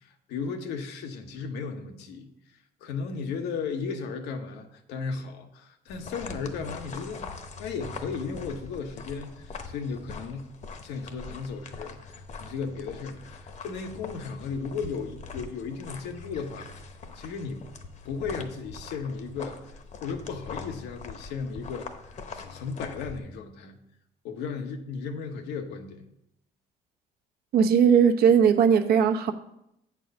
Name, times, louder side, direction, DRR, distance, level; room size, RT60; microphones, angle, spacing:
voice 1, 0.0-2.3 2.8-7.3 7.6-10.5 10.8-16.7 17.1-17.7 18.0-23.8 24.2-26.0, left 5 dB, 85° left, 5 dB, 1.1 m, -35 dB
sound 1, 5.9-23.2, left 4 dB, 45° left, 0.9 m, -42 dB
voice 2, 27.5-29.3, right 7 dB, 65° right, 5 dB, 0.9 m, -19 dB
8.0 x 4.7 x 6.4 m, 0.80 s
cardioid pair, 110°, 17 cm